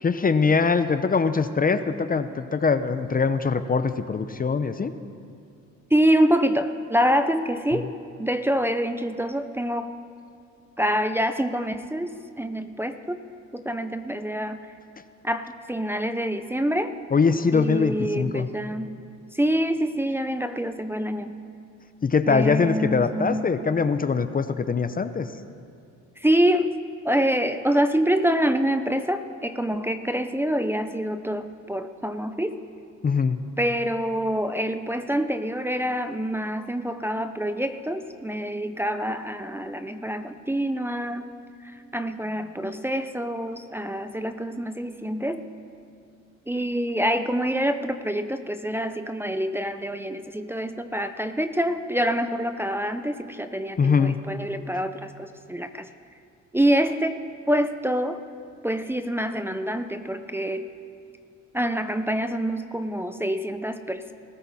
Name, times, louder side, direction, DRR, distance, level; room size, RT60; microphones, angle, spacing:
voice 1, 0.0-4.9 17.1-18.5 22.0-25.3 33.0-33.4 53.8-54.2, left 5 dB, 30° left, 11 dB, 0.7 m, -22 dB
voice 2, 5.9-7.9 8.2-9.9 10.8-12.1 12.4-13.2 13.5-14.6 15.2-16.9 17.5-18.9 19.3-21.4 22.3-23.5 26.2-26.7 27.0-32.6 33.6-41.3 41.6-45.4 46.5-55.9 56.5-57.2 57.5-58.2 58.6-60.7 61.5-64.1, equal, 10° right, 7 dB, 0.6 m, -26 dB
19.5 x 14.0 x 4.2 m, 2.4 s
cardioid pair, 90°, 30 cm